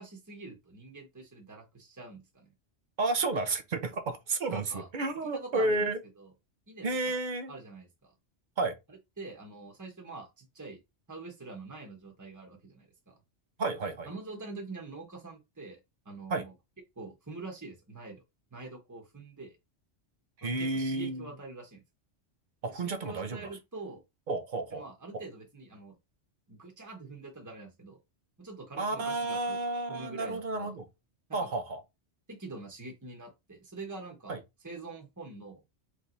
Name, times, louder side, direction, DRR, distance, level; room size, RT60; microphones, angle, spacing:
voice 1, 0.0-2.5 4.5-4.9 5.2-5.9 6.2-6.3 6.7-7.2 7.5-8.1 9.2-10.8 11.1-13.1 14.0-15.8 16.0-16.5 17.0-18.2 18.5-19.6 20.4-21.8 22.7-24.0 24.7-25.9 26.5-28.0 28.4-29.6 29.9-30.8 31.3-31.5 32.3-34.4 34.6-35.6, right 3 dB, 15° right, 1.2 m, -45 dB
voice 2, 3.0-6.0 6.8-7.5 8.6-8.8 13.6-14.1 16.3-16.4 20.4-21.3 22.6-23.5 24.3-24.8 28.8-30.9 31.3-31.8 34.3-34.4, right 2 dB, 50° right, 0.8 m, -31 dB
3.6 x 3.3 x 4.0 m
omnidirectional pair, 1.2 m